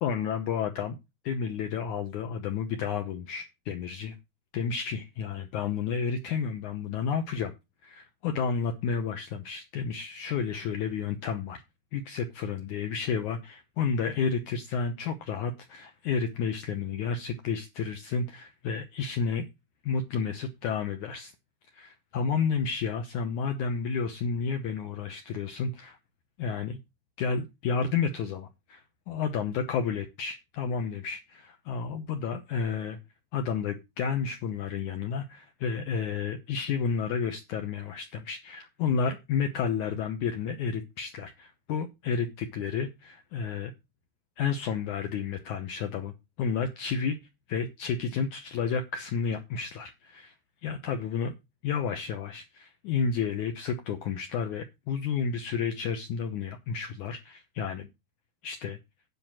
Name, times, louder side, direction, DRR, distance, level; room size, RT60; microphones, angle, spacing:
voice 1, 0.0-1.0 1.2-4.2 4.5-7.5 7.8-11.6 11.9-19.4 19.8-21.3 21.7-26.0 26.4-26.8 27.2-33.0 33.3-43.7 44.4-46.1 46.4-47.2 47.5-50.3 50.6-51.3 51.6-57.9 58.4-58.8, left 6 dB, 75° left, 1.8 m, -31 dB
9.8 x 5.2 x 7.5 m
omnidirectional pair, 4.7 m